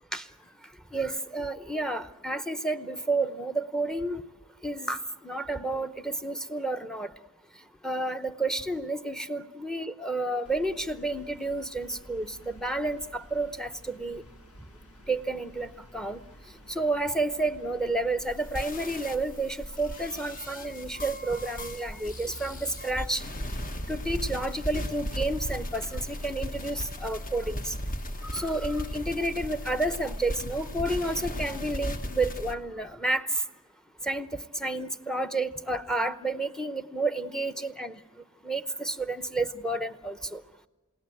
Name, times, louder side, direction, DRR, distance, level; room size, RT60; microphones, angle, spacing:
voice 1, 0.9-4.2 4.6-7.1 7.8-14.2 15.1-16.2 16.7-23.2 23.9-27.8 28.3-33.3 34.0-38.0 38.4-40.4, right 2 dB, 5° left, 11 dB, 0.8 m, -30 dB
Room Ambience Plain, 10.4-24.6, equal, 80° left, 1.7 m, -52 dB
sound 1, 18.2-32.5, equal, 40° left, 1.3 m, -36 dB
28.5 x 18.5 x 9.0 m, 1.3 s
head